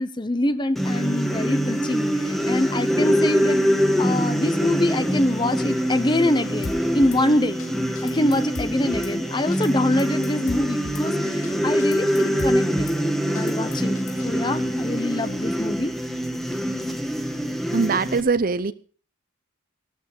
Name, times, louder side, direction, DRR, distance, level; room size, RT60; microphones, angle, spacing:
voice 1, 0.0-3.6 4.0-7.6 8.0-12.9 13.3-15.9, left 1 dB, 20° left, 12 dB, 0.9 m, -25 dB
sound 1, 0.8-18.2, equal, ahead, 1.5 m, -24 dB
sound 2, 1.3-16.5, left 2 dB, 45° left, 2.8 m, -46 dB
Drum kit / Snare drum, 6.6-7.2 7.6-7.7 8.0-9.1 9.5-9.7 10.0-11.1 11.4-11.5 11.8-13.0 13.4-14.3, left 4 dB, 80° left, 0.7 m, -37 dB
voice 2, 17.7-18.7, right 4 dB, 45° right, 14 dB, 0.7 m, -22 dB
14.5 x 13.0 x 4.3 m, 0.41 s
head